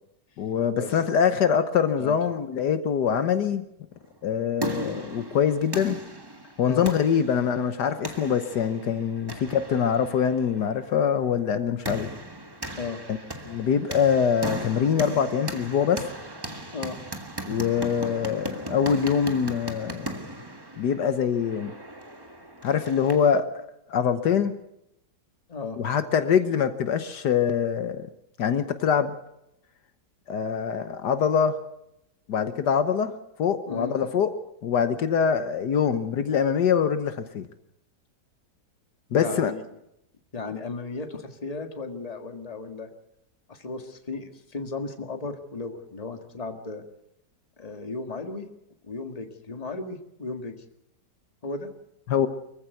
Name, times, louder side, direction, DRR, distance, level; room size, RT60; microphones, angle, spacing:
voice 1, 0.4-3.6 4.2-6.0 6.6-12.1 13.1-13.2 13.4-16.0 17.5-20.1 20.8-21.7 22.6-24.6 25.8-28.1 28.4-29.1 30.3-31.6 32.3-33.1 33.4-34.3 34.6-37.5 39.1-39.5 52.1-52.3, left 7 dB, 70° left, 10 dB, 1.6 m, -24 dB
sound 1, 4.2-23.4, right 1 dB, 15° right, 1.5 m, -38 dB
voice 2, 39.1-39.7 40.3-42.9 43.5-46.8 47.6-48.5 48.8-50.6 51.4-51.7, left 3 dB, 20° left, 5 dB, 1.8 m, -35 dB
24.5 x 15.0 x 8.1 m, 0.81 s
omnidirectional pair, 1.9 m